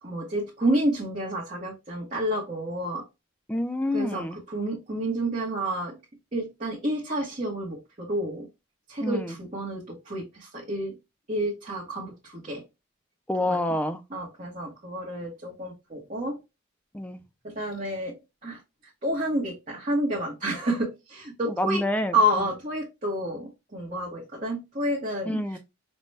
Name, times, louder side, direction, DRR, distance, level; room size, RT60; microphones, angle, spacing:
voice 1, 0.0-3.0 3.9-6.0 6.3-8.5 8.9-10.9 11.3-12.6 13.5-13.6 14.1-16.4 17.4-18.1 18.4-18.6 19.0-21.8 22.1-25.6, right 1 dB, 35° right, 0.8 m, -29 dB
voice 2, 3.5-4.4 9.0-9.4 13.3-14.0 16.9-17.2 21.5-22.5 25.2-25.6, left 1 dB, 5° left, 0.3 m, -28 dB
5.2 x 2.2 x 3.2 m
head